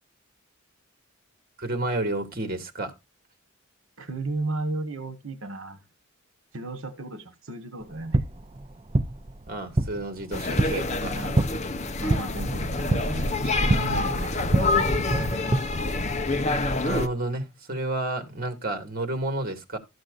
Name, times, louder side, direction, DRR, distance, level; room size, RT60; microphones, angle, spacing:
voice 1, 1.6-2.9 9.5-11.3 16.7-19.8, right 2 dB, 45° right, 2.3 m, -31 dB
voice 2, 4.0-5.8 6.5-8.2 11.1-11.4 12.0-15.3, right 2 dB, 70° right, 1.5 m, -34 dB
sound 1, 7.8-15.6, right 2 dB, 25° right, 0.6 m, -27 dB
sound 2, 10.3-17.1, left 2 dB, 35° left, 0.9 m, -27 dB
13.5 x 7.8 x 2.6 m
head